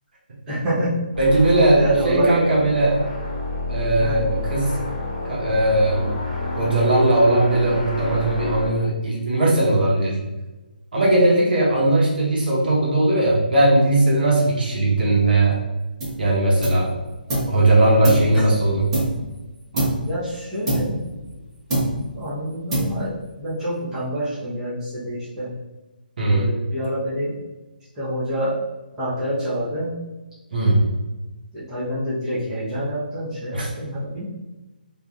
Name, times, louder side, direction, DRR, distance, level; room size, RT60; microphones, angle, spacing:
voice 1, 0.5-1.0 1.7-2.4 4.0-4.2 20.0-21.0 22.1-25.5 26.2-27.4 28.0-28.6 29.0-29.9 31.5-34.2, right 1 dB, 10° right, -13 dB, 0.8 m, -27 dB
sound 1, 1.1-8.7, left 2 dB, 40° left, 1.0 m, -29 dB
voice 2, 1.2-3.0 3.7-4.7 5.3-6.1 6.5-10.2 10.9-15.6 16.2-16.9 17.5-18.9 19.7-19.8 26.2-26.5 30.5-30.8 33.5-33.7, right 1 dB, 65° right, -5 dB, 1.0 m, -18 dB
sound 2, 16.0-16.3 16.6-17.6 18.0-19.4 19.7-20.2 20.7-21.4 21.7-22.2 22.7-23.3, right 1 dB, 35° right, 1.3 m, -25 dB
2.8 x 2.5 x 2.4 m, 1.1 s
hypercardioid pair, 165°, 5 cm